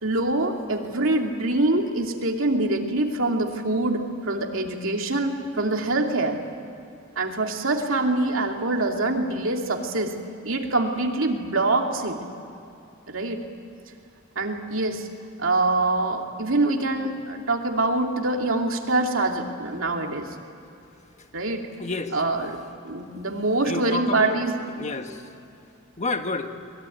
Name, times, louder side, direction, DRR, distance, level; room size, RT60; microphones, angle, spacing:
voice 1, 0.0-6.4 7.2-10.2 10.4-12.2 13.1-13.4 14.4-15.1 15.4-20.3 21.3-21.6 22.1-22.6 22.8-24.6, right 2 dB, 70° right, 2 dB, 2.7 m, -24 dB
voice 2, 21.8-22.2 23.6-24.4 24.7-25.3 26.0-26.5, left 3 dB, 35° left, 6 dB, 1.5 m, -29 dB
24.0 x 21.5 x 9.3 m, 2.7 s
head